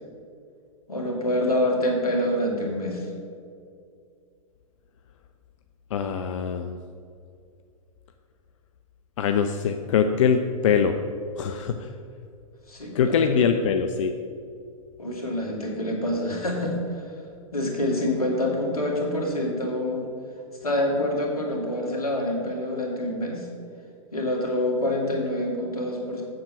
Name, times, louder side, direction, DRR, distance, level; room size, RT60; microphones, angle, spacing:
voice 1, 0.9-3.1 12.7-13.4 15.0-17.1 17.5-20.0 20.6-23.5 24.1-26.2, left 1 dB, 90° left, -1 dB, 2.3 m, -26 dB
voice 2, 5.9-6.8 9.2-11.0 11.4-11.7 12.9-14.1, left 7 dB, 60° left, 7 dB, 0.6 m, -23 dB
7.7 x 7.4 x 5.7 m, 2.4 s
hypercardioid pair, 115°, 18 cm